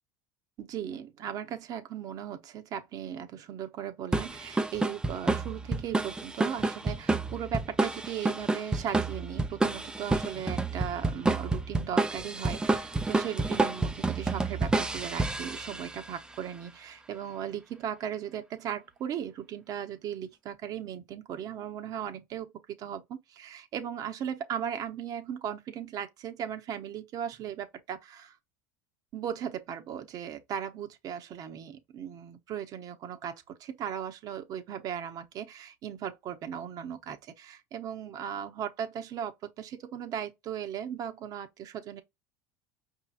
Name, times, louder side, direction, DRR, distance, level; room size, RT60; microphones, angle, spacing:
voice 1, 0.6-28.4 29.1-42.0, right 9 dB, 45° right, 1.0 m, -37 dB
sound 1, 4.1-16.1, right 3 dB, 10° right, 0.5 m, -29 dB
5.2 x 2.8 x 2.5 m
supercardioid pair, 115°, 9 cm